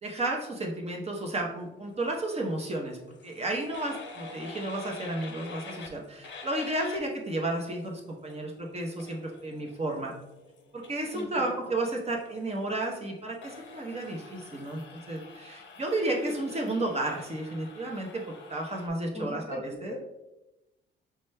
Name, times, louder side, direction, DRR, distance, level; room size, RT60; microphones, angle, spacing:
voice 1, 0.0-3.0 3.2-10.1 10.7-18.2 18.5-19.9, right 2 dB, 30° right, 0 dB, 0.8 m, -32 dB
sound 1, 1.9-18.9, left 4 dB, 65° left, 0.7 m, -48 dB
voice 2, 11.1-11.8 19.1-20.0, left 1 dB, 30° left, 1 dB, 0.8 m, -39 dB
4.9 x 3.2 x 2.2 m, 0.98 s
cardioid pair, 90°, 20 cm